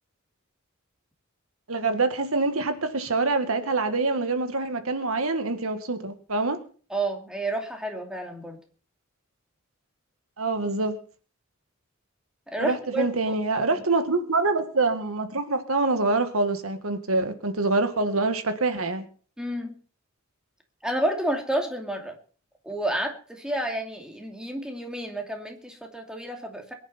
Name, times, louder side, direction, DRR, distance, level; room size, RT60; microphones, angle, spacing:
voice 1, 1.7-6.6 10.4-10.9 12.6-19.0, right 3 dB, 90° right, 8 dB, 1.9 m, -25 dB
voice 2, 6.9-8.6 12.5-13.4 19.4-19.7 20.8-22.2 22.6-26.7, right 1 dB, 5° right, 2 dB, 2.6 m, -30 dB
23.0 x 10.5 x 4.4 m, 0.41 s
head